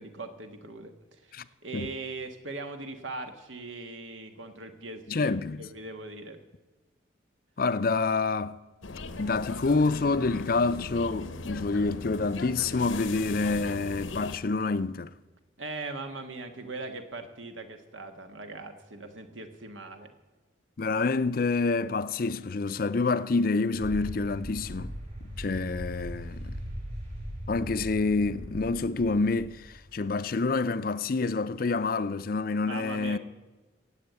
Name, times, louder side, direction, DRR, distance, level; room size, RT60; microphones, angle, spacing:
voice 1, 0.0-6.4 15.6-20.1 32.6-33.2, right 3 dB, 80° right, 1.6 m, -40 dB
voice 2, 5.1-5.7 7.6-8.6 9.2-15.1 20.8-24.9 25.4-26.6 27.5-33.2, left 3 dB, 45° left, 0.5 m, -27 dB
sound 1, 8.8-14.4, left 3 dB, 85° left, 0.9 m, -39 dB
sound 2, 23.8-30.3, equal, 40° right, 5.1 m, -39 dB
17.0 x 8.0 x 8.2 m
head